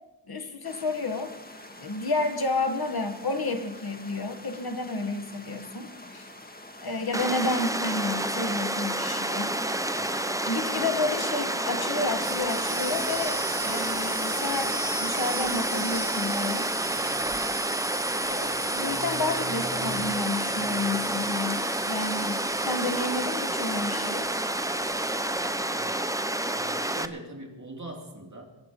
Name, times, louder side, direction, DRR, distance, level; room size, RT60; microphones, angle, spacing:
voice 1, 0.3-1.4 1.8-6.3 6.8-9.5 10.4-16.7 18.3-24.3, left 3 dB, 55° left, 7 dB, 1.6 m, -31 dB
sound 1, 0.6-17.2, left 1 dB, 20° left, 1.8 m, -47 dB
Water, 7.1-27.1, right 1 dB, 10° right, 0.7 m, -29 dB
sound 2, 12.1-25.6, right 3 dB, 65° right, 3.8 m, -37 dB
voice 2, 25.7-26.0 26.4-28.4, right 1 dB, 40° right, -1 dB, 3.3 m, -42 dB
22.5 x 8.3 x 5.5 m, 1.1 s
wide cardioid pair, 75°, 44 cm